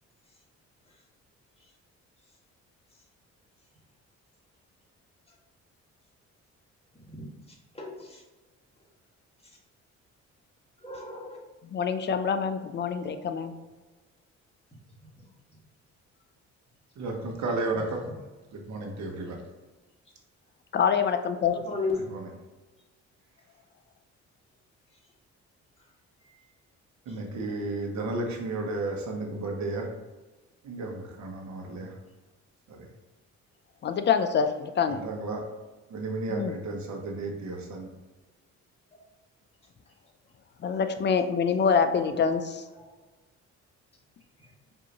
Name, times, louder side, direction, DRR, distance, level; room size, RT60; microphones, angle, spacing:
voice 1, 7.0-8.2 9.4-9.6 10.8-11.4 17.7-18.2 21.5-22.0 26.2-26.4 27.1-27.2 38.9-39.0 41.8-42.1 42.8-42.9 44.4-44.5, left 3 dB, 20° left, -4 dB, 1.5 m, -37 dB
voice 2, 11.6-13.6 20.7-21.5 33.8-35.0 36.3-36.5 40.6-42.6, left 6 dB, 35° left, 9 dB, 0.4 m, -26 dB
voice 3, 16.9-18.0 18.5-19.4 22.1-22.3 27.1-29.9 30.6-32.0 32.7-32.9 34.9-35.4 35.9-37.9, right 2 dB, 65° right, 1 dB, 1.0 m, -33 dB
5.1 x 2.7 x 2.9 m, 1.2 s
cardioid pair, 90°, 30 cm